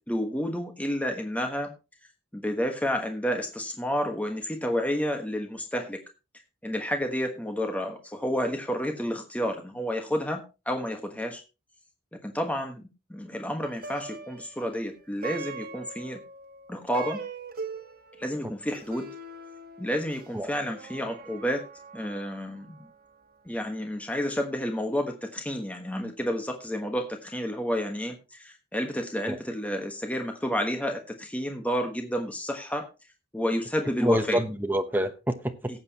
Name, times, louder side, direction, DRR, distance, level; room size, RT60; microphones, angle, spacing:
voice 1, 0.1-1.7 2.3-6.0 6.6-11.4 12.1-16.2 16.7-17.2 18.2-19.1 19.8-21.6 21.9-22.9 23.4-32.9 33.3-34.4 35.7-35.8, equal, 10° left, 4 dB, 1.3 m, -30 dB
Plucked string instrument, 13.6-23.0, right 4 dB, 50° right, 1.4 m, -42 dB
voice 2, 34.0-35.8, equal, 10° right, 7 dB, 1.0 m, -27 dB
18.0 x 8.1 x 2.9 m, 0.29 s
head